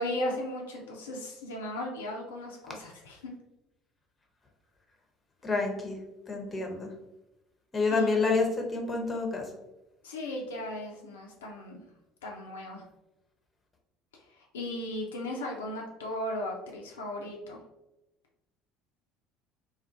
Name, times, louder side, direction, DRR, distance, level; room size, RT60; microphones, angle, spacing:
voice 1, 0.0-3.3 7.9-8.1 10.0-11.8 12.2-12.8 14.4-17.6, left 1 dB, 80° left, 0 dB, 0.3 m, -36 dB
voice 2, 5.4-6.0 6.3-6.9 7.7-9.5, left 3 dB, 25° left, 2 dB, 0.6 m, -28 dB
2.3 x 2.3 x 2.4 m, 0.96 s
hypercardioid pair, 65°, 0 cm